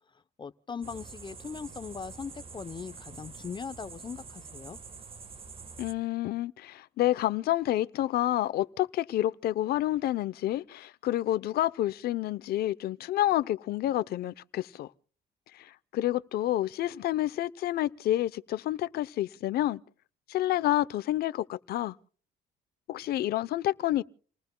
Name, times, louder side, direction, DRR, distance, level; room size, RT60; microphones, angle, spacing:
voice 1, 0.4-4.8, left 6 dB, 30° left, 0.9 m, -40 dB
sound 1, 0.8-5.9, right 5 dB, 35° right, 1.6 m, -46 dB
voice 2, 5.8-14.9 15.6-19.8 20.3-21.9 22.9-24.0, left 14 dB, 65° left, 0.8 m, -29 dB
29.5 x 19.5 x 2.3 m
cardioid pair, 110°, 17 cm